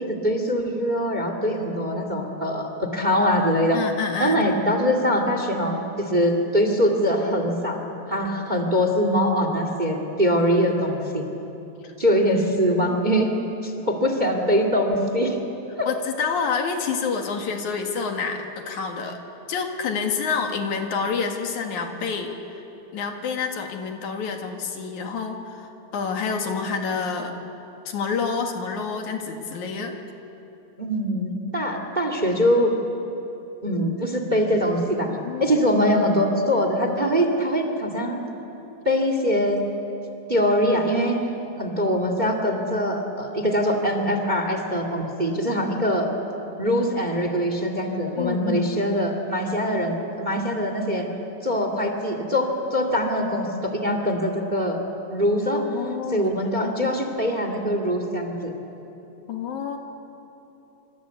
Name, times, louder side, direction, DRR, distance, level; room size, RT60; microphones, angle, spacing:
voice 1, 0.1-3.8 4.2-7.8 8.1-11.2 12.0-13.3 13.6-15.4 15.8-15.9 30.8-32.7 33.6-35.1 35.4-38.2 38.8-39.6 40.3-41.2 41.6-46.1 46.6-51.1 51.4-54.8 55.1-55.7 56.1-58.6, equal, 15° right, 5 dB, 2.0 m, -23 dB
voice 2, 3.7-4.6 11.8-11.9 12.6-13.0 15.9-19.2 19.5-22.6 22.9-27.3 27.9-30.0 35.1-35.6 48.2-48.8 55.6-57.0 59.3-59.8, left 5 dB, 75° left, 3 dB, 3.3 m, -28 dB
26.0 x 25.5 x 8.3 m, 3.0 s
omnidirectional pair, 3.4 m